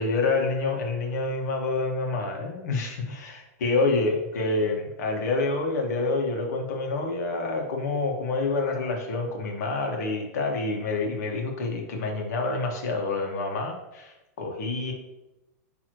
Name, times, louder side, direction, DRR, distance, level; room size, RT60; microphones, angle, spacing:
voice 1, 0.0-14.9, left 3 dB, 75° left, 1 dB, 1.7 m, -27 dB
9.3 x 3.5 x 3.1 m, 0.97 s
supercardioid pair, 150°, 9 cm